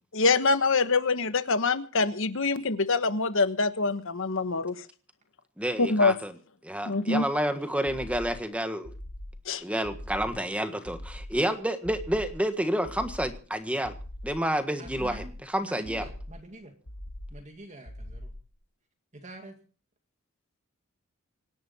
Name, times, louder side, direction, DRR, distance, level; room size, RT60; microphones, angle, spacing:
voice 1, 0.1-4.8 5.8-6.1 6.8-7.2 9.5-9.6, left 3 dB, 65° left, 11 dB, 1.3 m, -25 dB
voice 2, 5.6-6.3 6.6-8.9 9.6-13.9 14.2-16.1, right 1 dB, 5° right, 8 dB, 1.5 m, -29 dB
sound 1, 7.9-8.5 8.8-9.5 9.8-10.5 10.8-11.5 11.8-12.5 12.8-13.5 13.8-14.5 14.8-15.5 15.8-16.5 16.8-17.5 17.8-18.5, left 1 dB, 80° left, 2.6 m, -42 dB
voice 3, 14.8-15.3 15.6-16.8 17.3-18.3 19.1-19.6, right 1 dB, 35° right, 3 dB, 2.3 m, -45 dB
26.0 x 11.0 x 4.3 m, 0.40 s
head